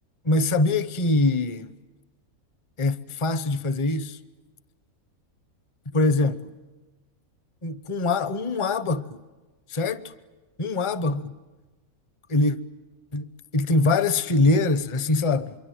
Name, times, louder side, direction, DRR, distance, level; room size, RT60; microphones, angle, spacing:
voice 1, 0.2-1.7 2.8-4.2 5.9-6.5 7.6-9.2 9.7-10.1 10.6-11.4 12.3-12.6 13.1-15.5, left 3 dB, 25° left, 0.7 m, -23 dB
26.0 x 23.5 x 9.2 m
omnidirectional pair, 1.5 m